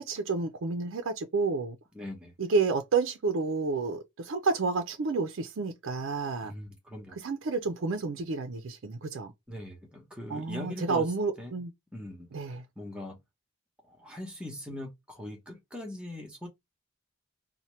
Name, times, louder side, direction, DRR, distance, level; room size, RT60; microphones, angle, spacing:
voice 1, 0.0-1.8 2.4-6.5 7.2-9.3 10.3-11.7 12.3-12.7, right 4 dB, 60° right, 0.4 m, -30 dB
voice 2, 1.9-2.3 6.4-7.2 9.5-11.0 11.4-11.6 11.9-12.3 12.8-13.2 13.9-16.5, left 1 dB, 5° right, 0.8 m, -41 dB
2.8 x 2.1 x 3.0 m
head